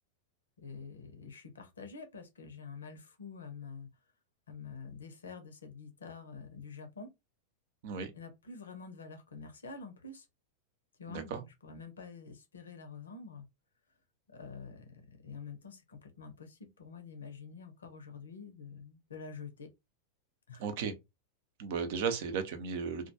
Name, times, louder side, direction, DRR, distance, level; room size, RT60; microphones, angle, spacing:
voice 1, 0.6-3.9 4.5-7.1 8.1-10.3 11.0-13.5 14.3-19.7 20.5-20.6, left 5 dB, 70° left, 0.6 m, -47 dB
voice 2, 11.1-11.4 20.6-20.9 21.6-23.1, right 6 dB, 50° right, 0.6 m, -35 dB
2.2 x 2.2 x 2.7 m
figure-of-eight pair, 90°, 0 cm